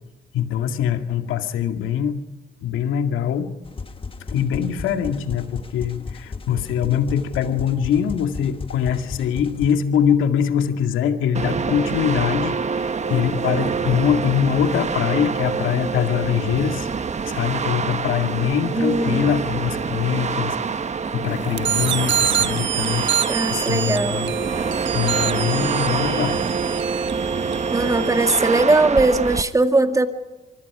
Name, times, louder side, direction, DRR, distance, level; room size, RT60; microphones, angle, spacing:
voice 1, 0.3-2.2 2.6-3.6 4.3-16.9 17.2-24.3 24.9-26.4, left 8 dB, 85° left, 6 dB, 2.2 m, -23 dB
sound 1, 3.6-9.7, left 4 dB, 25° left, 1.4 m, -35 dB
sound 2, 11.3-29.4, right 5 dB, 35° right, 1.2 m, -26 dB
voice 2, 18.8-19.3 23.3-24.2 27.7-30.1, right 2 dB, 15° right, 7 dB, 2.1 m, -19 dB
sound 3, 21.6-28.4, right 10 dB, 65° right, 1.3 m, -27 dB
25.5 x 24.5 x 5.0 m, 1.1 s
cardioid pair, 90°, 20 cm